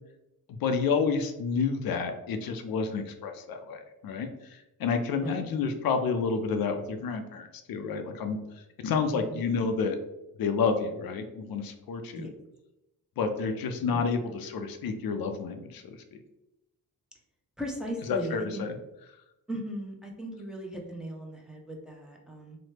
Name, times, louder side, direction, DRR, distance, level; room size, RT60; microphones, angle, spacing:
voice 1, 0.6-8.4 8.8-10.0 10.4-12.3 13.2-16.0 18.1-18.7, left 5 dB, 70° left, 6 dB, 0.5 m, -29 dB
voice 2, 9.1-9.4 12.1-12.3 13.9-14.0 17.6-18.6 19.5-22.6, equal, ahead, -1 dB, 0.6 m, -38 dB
2.9 x 2.1 x 3.1 m, 0.92 s
cardioid pair, 70°, 37 cm